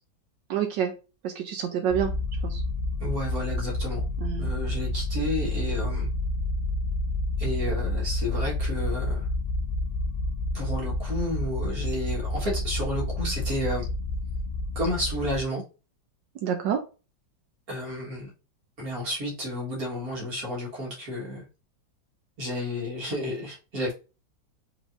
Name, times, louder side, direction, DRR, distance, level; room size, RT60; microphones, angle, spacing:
voice 1, 0.5-0.9 1.2-2.1 2.4-2.6 4.2-4.5 16.4-16.8, right 9 dB, 75° right, 1.3 m, -27 dB
sound 1, 1.9-15.4, left 2 dB, 55° left, 0.8 m, -29 dB
voice 2, 3.0-4.0 4.4-6.1 7.4-9.3 10.5-13.9 14.8-15.6 17.7-18.3 18.8-21.5 22.4-23.9, left 1 dB, 50° right, 2.0 m, -31 dB
4.8 x 3.8 x 2.5 m
omnidirectional pair, 2.0 m